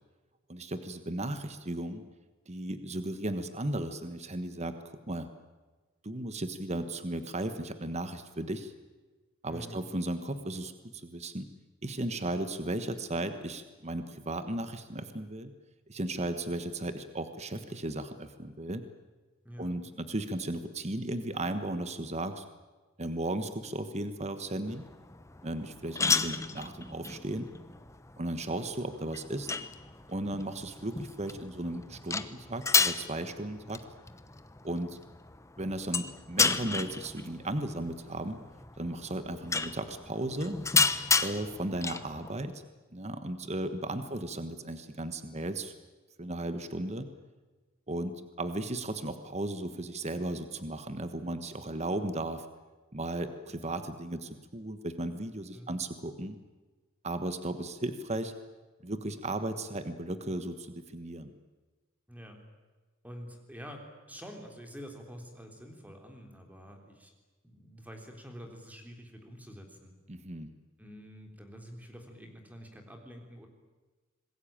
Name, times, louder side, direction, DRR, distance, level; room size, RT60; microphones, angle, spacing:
voice 1, 0.5-2.0 2.5-5.3 6.0-8.7 9.4-11.5 11.8-15.5 15.9-18.8 19.6-22.4 23.0-24.8 25.4-27.5 28.2-29.5 30.1-33.8 34.6-35.0 35.6-38.4 38.8-40.6 41.2-42.6 42.9-45.7 46.2-47.1 47.9-52.5 52.9-56.4 57.0-58.3 58.8-61.3 70.1-70.5, right 1 dB, 30° right, 10 dB, 1.3 m, -35 dB
voice 2, 9.5-9.8 19.4-19.8 44.0-44.3 55.5-55.8 62.1-62.4 63.0-63.8 64.1-67.1 67.4-69.9 70.8-73.5, equal, 5° right, 3 dB, 3.6 m, -47 dB
sound 1, 24.7-42.4, left 4 dB, 15° left, 0.9 m, -33 dB
26.5 x 20.5 x 8.9 m, 1.3 s
head